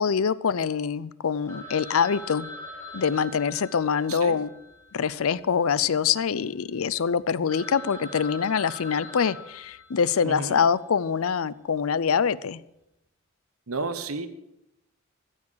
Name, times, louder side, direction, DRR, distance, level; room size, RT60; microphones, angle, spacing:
voice 1, 0.0-2.5 2.9-4.5 4.9-12.6, left 6 dB, 75° left, 19 dB, 0.5 m, -25 dB
Telephone, 1.5-5.8 6.1-6.2 6.7-6.8 7.2-7.3 7.5-10.4, left 1 dB, 10° left, 3.2 m, -42 dB
voice 2, 10.2-10.6 13.7-14.3, right 3 dB, 80° right, 10 dB, 1.2 m, -32 dB
14.0 x 7.3 x 8.4 m, 0.86 s
head